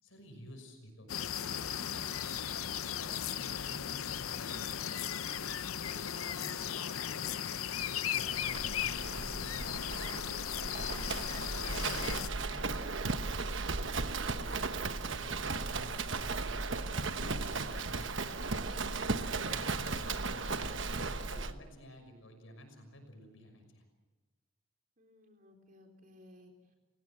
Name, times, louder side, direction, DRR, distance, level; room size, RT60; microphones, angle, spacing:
voice 1, 0.0-1.1 1.5-2.2 2.5-5.4 5.6-7.3 7.8-10.0 10.8-11.1 11.4-16.5 17.0-18.1 19.2-23.8, left 1 dB, 70° left, 6 dB, 6.0 m, -52 dB
sound 1, 1.1-12.3, left 9 dB, 90° left, 0.7 m, -37 dB
Livestock farm animals working animals, 8.5-21.5, right 3 dB, 65° right, 1.2 m, -36 dB
voice 2, 25.0-26.8, left 1 dB, 40° right, 3 dB, 3.9 m, -59 dB
30.0 x 17.0 x 7.7 m, 1.2 s
head